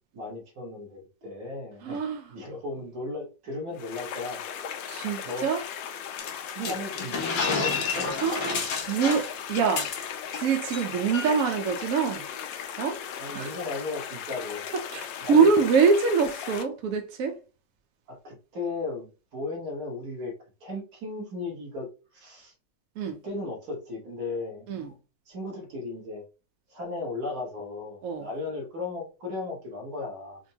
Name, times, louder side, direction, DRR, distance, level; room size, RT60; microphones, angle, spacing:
voice 1, 0.1-2.0 2.3-4.4 5.2-5.5 6.5-8.2 13.2-14.6 15.2-15.5 18.1-20.3 20.6-21.9 22.1-22.5 23.0-25.0 25.3-26.2 26.7-30.4, left 3 dB, 55° right, 1.7 m, -36 dB
voice 2, 1.8-2.2 4.9-5.6 6.6-6.7 8.2-9.9 10.4-12.3 12.8-13.0 13.3-13.5 14.9-17.4 23.0-23.2 24.7-24.9 28.0-28.3, right 5 dB, 70° right, 0.8 m, -25 dB
sound 1, 3.7-16.6, left 8 dB, 90° left, 1.3 m, -37 dB
sound 2, 6.2-10.4 10.7-10.8 11.1-11.5, left 5 dB, 65° left, 1.0 m, -30 dB
4.3 x 2.2 x 2.7 m
omnidirectional pair, 2.0 m